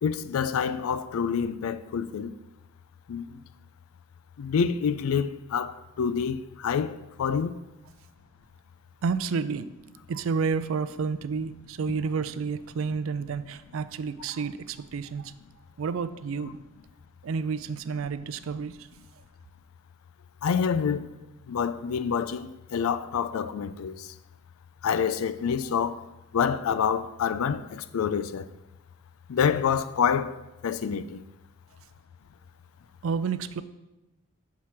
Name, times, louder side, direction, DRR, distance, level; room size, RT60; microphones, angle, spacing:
voice 1, 0.0-2.3 3.1-3.3 4.4-7.5 20.4-21.1 21.5-24.1 24.8-26.0 26.3-28.5 29.3-30.3 30.6-31.2, left 7 dB, 85° left, 0.4 m, -27 dB
voice 2, 9.0-9.7 10.1-15.3 15.8-16.6 17.2-18.9 33.0-33.6, right 5 dB, 75° right, 0.4 m, -30 dB
5.7 x 4.8 x 5.8 m
head